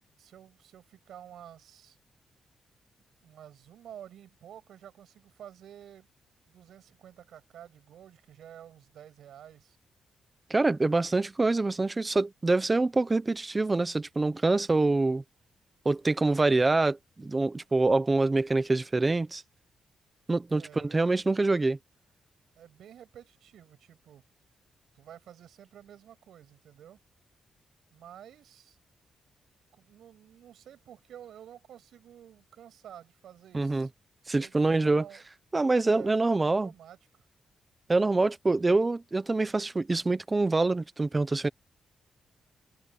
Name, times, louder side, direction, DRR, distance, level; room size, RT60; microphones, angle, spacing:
voice 1, 0.2-2.0 3.2-6.1 6.5-9.8 20.5-21.1 22.6-24.2 24.9-27.0 27.9-28.8 29.7-33.9 34.3-35.3 35.9-37.2, right 10 dB, 85° right, 7.4 m, -50 dB
voice 2, 10.5-15.2 15.8-19.4 20.3-21.8 33.5-33.9 34.3-35.0 35.5-36.7 37.9-41.5, right 3 dB, 20° right, 0.9 m, -25 dB
cardioid pair, 130°, 0 cm